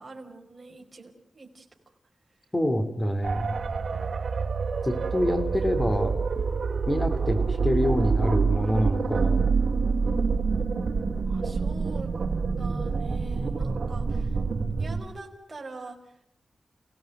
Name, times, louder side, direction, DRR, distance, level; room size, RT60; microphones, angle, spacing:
voice 1, 0.0-1.7 11.2-12.1 12.6-14.4 14.8-16.1, right 3 dB, 30° right, 1 dB, 5.2 m, -44 dB
voice 2, 2.5-3.6 4.8-6.1 6.9-9.5, equal, 20° left, 8 dB, 3.6 m, -26 dB
sound 1, 3.2-15.0, right 5 dB, 55° right, 3.0 m, -27 dB
30.0 x 18.0 x 9.4 m, 0.81 s
wide cardioid pair, 105°, 0 cm